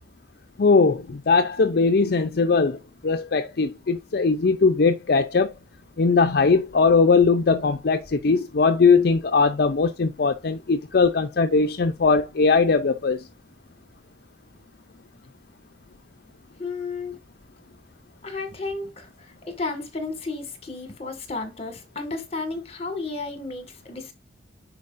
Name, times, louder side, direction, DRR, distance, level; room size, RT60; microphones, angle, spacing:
voice 1, 0.6-2.8 3.0-5.5 6.0-13.2, left 4 dB, 60° left, 0.5 m, -20 dB
voice 2, 16.6-17.2 18.2-24.1, left 3 dB, 35° left, 1.8 m, -33 dB
9.6 x 4.6 x 2.5 m
head